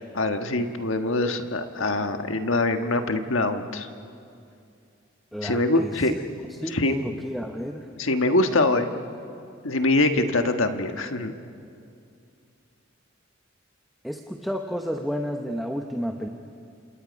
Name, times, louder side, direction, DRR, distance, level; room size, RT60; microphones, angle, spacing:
voice 1, 0.1-3.9 5.4-6.1 6.7-6.9 8.0-8.9 9.6-11.3, left 2 dB, 80° left, 6 dB, 1.4 m, -23 dB
voice 2, 5.3-6.2 6.6-7.9 8.5-8.7 14.0-16.3, equal, ahead, 2 dB, 0.9 m, -31 dB
28.5 x 27.0 x 5.3 m, 2.5 s
head